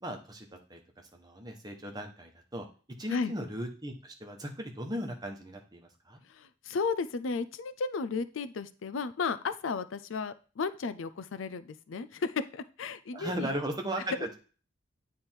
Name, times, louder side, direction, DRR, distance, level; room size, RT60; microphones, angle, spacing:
voice 1, 0.0-2.7 3.0-6.2 13.1-14.4, right 1 dB, 20° right, 2 dB, 1.1 m, -37 dB
voice 2, 6.3-13.5, left 4 dB, 90° left, 14 dB, 0.5 m, -34 dB
9.5 x 3.4 x 4.4 m, 0.37 s
head